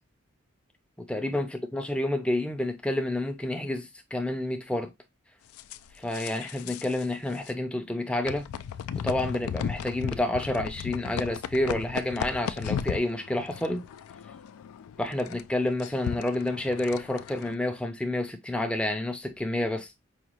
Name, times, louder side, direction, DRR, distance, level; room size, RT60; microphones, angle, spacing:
voice 1, 1.0-4.9 6.0-8.4 8.9-13.8 15.0-19.9, left 1 dB, 5° left, 0.4 m, -29 dB
sound 1, 5.6-7.0 7.3-7.5 8.2-17.5, left 8 dB, 90° left, 0.3 m, -36 dB
4.9 x 2.3 x 2.9 m
head